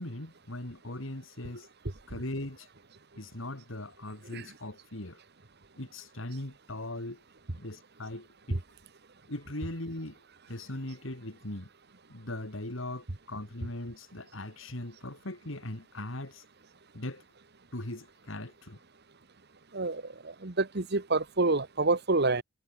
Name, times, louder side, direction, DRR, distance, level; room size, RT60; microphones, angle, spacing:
voice 1, 0.0-1.7 2.1-2.7 3.1-5.2 5.8-7.2 7.6-8.6 9.3-10.2 10.5-11.7 12.1-16.4 16.9-17.2 17.7-18.8, left 1 dB, 65° left, 3.3 m, -39 dB
voice 2, 20.4-22.4, right 3 dB, 50° right, 1.5 m, -27 dB
head